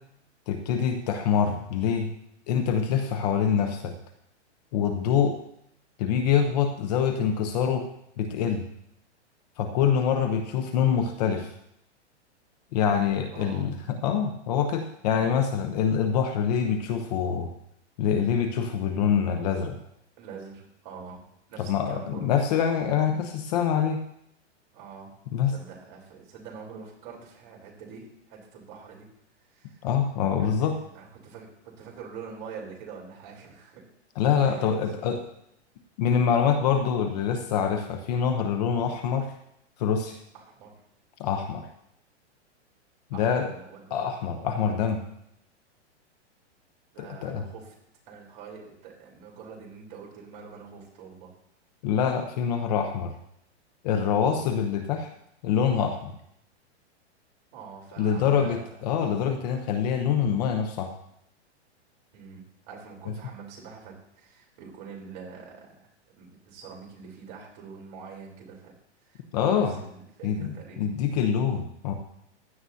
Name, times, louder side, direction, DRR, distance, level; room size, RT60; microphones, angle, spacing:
voice 1, 0.5-2.1 2.5-3.9 4.7-5.3 6.0-7.8 8.2-8.7 9.6-11.5 12.7-17.5 18.0-19.8 21.6-24.0 25.3-25.5 29.8-30.8 34.2-35.2 36.0-39.3 39.8-40.2 41.2-41.7 43.1-43.5 43.9-45.0 47.0-47.5 51.8-53.1 53.8-55.1 55.4-56.1 58.0-60.9 69.3-69.7 70.2-71.9, left 7 dB, 35° left, 6 dB, 0.9 m, -25 dB
voice 2, 13.3-13.8 15.1-15.3 20.2-22.3 23.0-23.3 24.7-25.2 25.5-29.1 29.5-29.9 30.4-33.9 34.4-35.1 36.3-36.9 40.3-40.7 43.1-44.7 46.9-47.7 48.1-51.3 54.3-54.5 57.5-58.8 62.1-65.9 66.2-68.7 69.0-70.8, right 5 dB, 35° right, -2 dB, 3.8 m, -45 dB
16.0 x 11.0 x 2.8 m, 0.75 s
hypercardioid pair, 160°, 35 cm